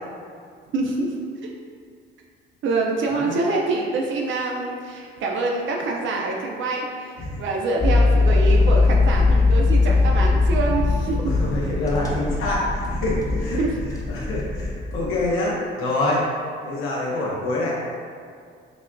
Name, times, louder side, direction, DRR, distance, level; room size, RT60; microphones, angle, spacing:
voice 1, 0.7-1.1 2.6-11.2 13.6-13.8, right 3 dB, 65° right, -1 dB, 0.5 m, -25 dB
sound 1, 7.8-15.3, left 3 dB, 15° left, 0.6 m, -20 dB
voice 2, 11.3-13.6 14.1-16.2 16.6-17.8, left 2 dB, 90° left, -5 dB, 0.7 m, -26 dB
5.0 x 2.5 x 2.2 m, 2.2 s
cardioid pair, 85°, 21 cm